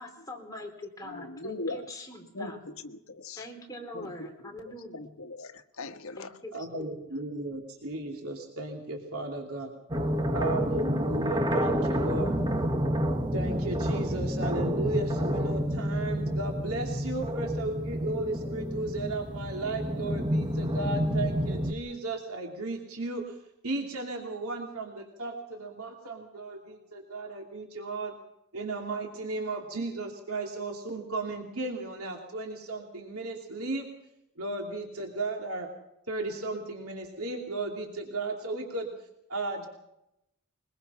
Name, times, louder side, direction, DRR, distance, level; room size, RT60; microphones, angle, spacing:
voice 1, 0.0-2.6 3.4-5.0 6.2-6.9, left 1 dB, 15° left, 1 dB, 4.0 m, -43 dB
voice 2, 1.0-1.9 2.3-3.4 3.9-4.5 4.9-6.4, left 2 dB, 75° left, 8 dB, 1.4 m, -40 dB
voice 3, 6.5-9.7 10.3-12.4 13.3-23.4 23.6-28.1 28.5-33.9 34.4-35.7 36.1-38.9 39.3-39.7, right 2 dB, 80° right, 2 dB, 2.9 m, -35 dB
sound 1, 9.9-21.7, equal, 20° right, 1.2 m, -29 dB
22.5 x 21.5 x 5.7 m, 0.85 s
head